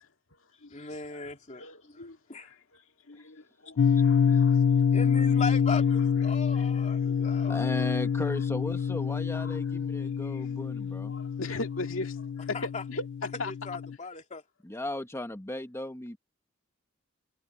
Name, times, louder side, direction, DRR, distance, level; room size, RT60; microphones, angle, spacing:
voice 1, 0.7-2.5 4.9-7.7 12.5-12.8 13.5-14.4, left 4 dB, 35° left, 2.7 m, -38 dB
voice 2, 1.5-4.8 7.1-7.6 9.4-9.6 10.2-10.4 11.1-13.5, left 2 dB, 80° left, 2.1 m, -39 dB
sound 1, 3.8-13.9, left 7 dB, 65° left, 0.4 m, -26 dB
voice 3, 7.5-11.1 14.6-16.2, left 1 dB, 15° left, 1.4 m, -36 dB
head